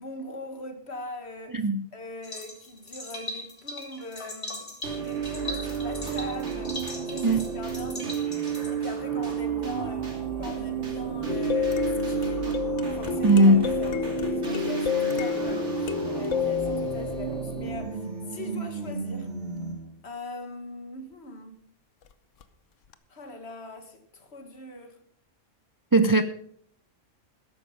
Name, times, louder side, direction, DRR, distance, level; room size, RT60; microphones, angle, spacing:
voice 1, 0.0-1.7 1.9-6.8 7.1-8.1 8.7-10.1 10.4-12.6 12.9-15.7 16.1-19.3 20.0-21.6 23.1-25.0, left 2 dB, 55° left, 1.9 m, -41 dB
voice 2, 1.5-1.8 7.2-7.4 13.2-13.6 25.9-26.2, right 1 dB, 30° right, 0.4 m, -18 dB
sound 1, 2.2-8.7, left 1 dB, 40° left, 2.8 m, -39 dB
sound 2, 4.8-20.0, right 7 dB, 65° right, 3.1 m, -32 dB
sound 3, 11.3-18.2 22.4-22.5 22.9-23.0, left 8 dB, 80° left, 1.2 m, -30 dB
13.5 x 11.5 x 5.2 m
omnidirectional pair, 1.3 m